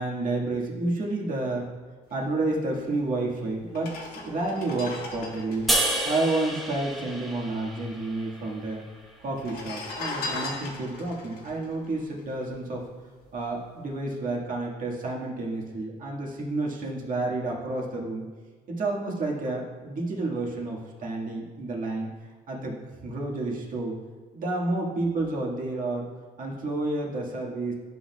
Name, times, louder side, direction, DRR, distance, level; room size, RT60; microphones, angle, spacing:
voice 1, 0.0-1.7 2.1-5.7 6.0-8.8 9.2-12.8 13.3-18.3 18.7-22.1 22.5-22.8 23.0-23.9 24.3-26.1 26.4-27.7, right 2 dB, 50° right, -3 dB, 1.8 m, -30 dB
sound 1, 3.0-3.1 3.7-7.4 7.6-7.7 7.9-8.6 9.3-12.8 13.2-13.4, left 3 dB, 70° left, 1.3 m, -38 dB
sound 2, 5.7-9.0, right 1 dB, ahead, 1.1 m, -30 dB
11.0 x 6.1 x 2.3 m, 1.4 s
cardioid pair, 110°, 17 cm